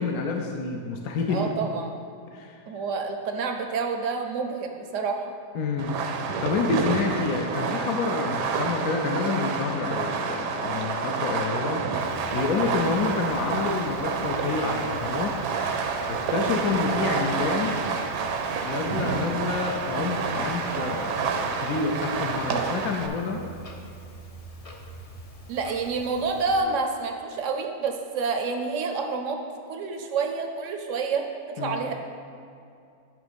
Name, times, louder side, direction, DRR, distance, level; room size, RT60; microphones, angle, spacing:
voice 1, 0.0-1.5 2.3-2.6 5.5-6.1 6.4-11.8 12.3-15.4 16.1-17.8 18.6-23.4 31.6-31.9, left 4 dB, 70° left, 2 dB, 1.0 m, -28 dB
voice 2, 1.3-1.9 2.7-5.3 25.5-29.4 29.7-31.3 31.6-31.9, right 4 dB, 65° right, 4 dB, 0.8 m, -28 dB
Fireworks, 5.8-23.1, right 5 dB, 80° right, 1.2 m, -29 dB
Clock, 12.0-26.6, right 1 dB, 40° left, 0.5 m, -45 dB
10.5 x 3.7 x 5.1 m, 2.5 s
omnidirectional pair, 1.8 m